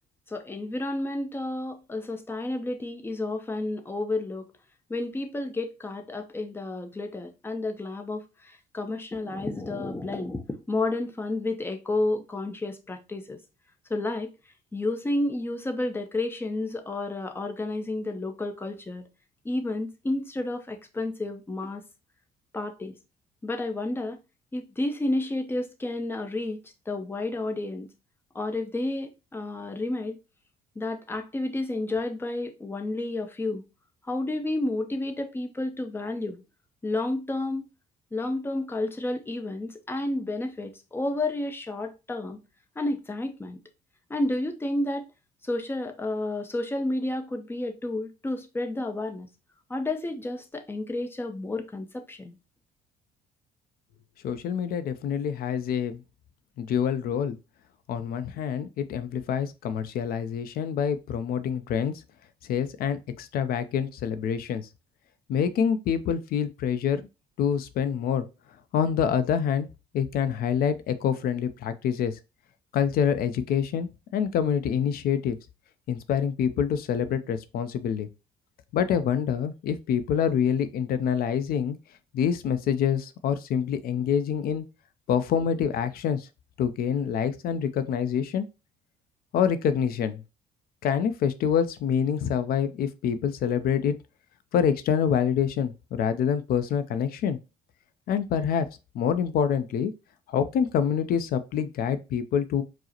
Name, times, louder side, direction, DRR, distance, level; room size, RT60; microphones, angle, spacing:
voice 1, 0.3-4.5 4.9-13.4 13.9-14.3 14.7-19.1 19.4-21.8 22.5-22.9 23.4-24.2 24.5-26.6 26.9-27.9 28.3-30.2 30.8-33.6 34.1-36.4 36.8-37.7 38.1-42.4 42.8-43.6 44.1-45.1 45.4-49.3 49.7-52.4, left 2 dB, 15° left, 0.6 m, -31 dB
voice 2, 54.2-56.0 56.6-57.4 57.9-61.9 62.5-64.6 65.3-67.0 67.4-68.3 68.7-69.7 69.9-72.1 72.7-75.4 75.9-78.1 78.7-81.8 82.1-84.6 85.1-86.3 86.6-88.5 89.3-90.2 90.8-94.0 94.5-97.4 98.1-98.7 98.9-99.9 100.3-102.6, left 8 dB, 60° left, 0.5 m, -26 dB
4.7 x 2.0 x 2.9 m
cardioid pair, 110°, 17 cm